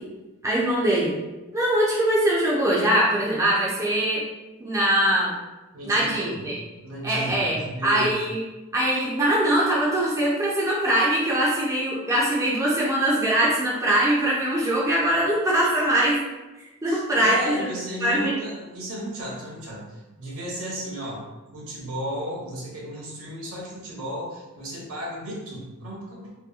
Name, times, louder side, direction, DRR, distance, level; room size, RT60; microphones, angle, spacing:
voice 1, 0.4-1.1 1.5-4.2 4.6-5.3 5.8-6.5 7.0-8.4 8.7-16.2 16.8-17.6 18.0-18.3, right 1 dB, 15° right, -6 dB, 0.4 m, -22 dB
voice 2, 5.7-6.4 6.8-8.1 16.9-21.2 21.5-26.3, equal, 65° right, -3 dB, 0.8 m, -34 dB
2.8 x 2.2 x 2.3 m, 1.1 s
head